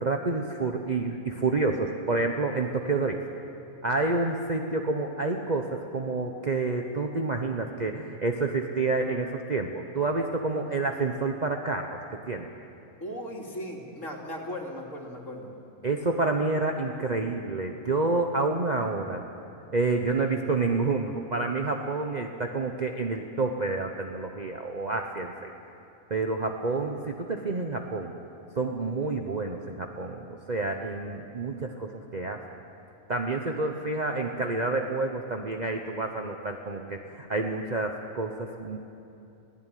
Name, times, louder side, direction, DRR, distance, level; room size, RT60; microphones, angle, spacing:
voice 1, 0.0-3.3 3.8-12.0 12.3-12.5 15.8-19.2 19.7-25.5 26.1-28.1 28.6-30.2 30.5-32.4 33.1-38.8, right 3 dB, 35° right, 3 dB, 1.1 m, -29 dB
voice 2, 13.0-15.5, equal, 70° left, -1 dB, 3.4 m, -37 dB
23.5 x 16.5 x 9.2 m, 2.8 s
omnidirectional pair, 1.4 m